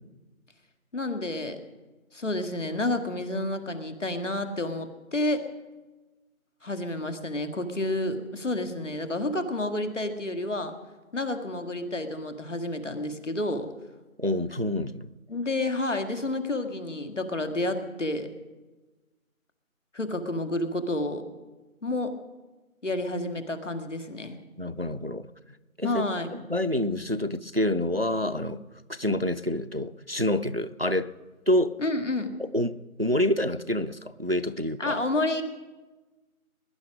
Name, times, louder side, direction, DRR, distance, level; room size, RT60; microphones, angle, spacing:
voice 1, 0.9-1.6 2.1-5.4 6.6-10.7 11.1-13.7 15.3-18.3 19.9-21.2 21.8-22.1 22.8-24.4 25.8-26.3 31.8-32.3 34.8-35.4, left 2 dB, 55° left, 7 dB, 2.0 m, -30 dB
voice 2, 14.2-15.1 24.6-25.3 25.8-26.0 26.3-28.6 28.9-31.1 31.5-31.8 32.4-35.0, left 1 dB, 45° right, 13 dB, 0.5 m, -27 dB
20.5 x 11.0 x 6.3 m, 1.2 s
figure-of-eight pair, 175°, 43 cm